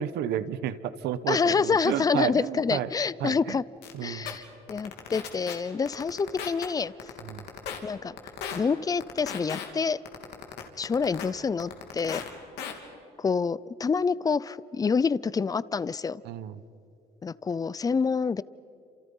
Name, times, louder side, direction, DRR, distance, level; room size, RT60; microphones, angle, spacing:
voice 1, 0.0-2.9 3.2-3.6 3.9-4.3 7.2-7.4 16.2-16.6, right 10 dB, 80° right, 14 dB, 1.1 m, -31 dB
voice 2, 1.3-3.6 4.0-6.9 7.8-8.2 8.5-10.0 10.8-12.2 13.2-16.2 17.2-18.4, left 5 dB, 20° left, 20 dB, 0.6 m, -27 dB
sound 1, 3.8-3.9 4.3-4.4 4.7-5.5 5.9-6.7 7.0-7.8 8.2-8.6 9.0-9.7 10.1-11.3 11.6-12.3 12.6-12.7, left 8 dB, 80° left, 3.2 m, -36 dB
29.0 x 27.5 x 5.6 m, 2.7 s
cardioid pair, 110°, 17 cm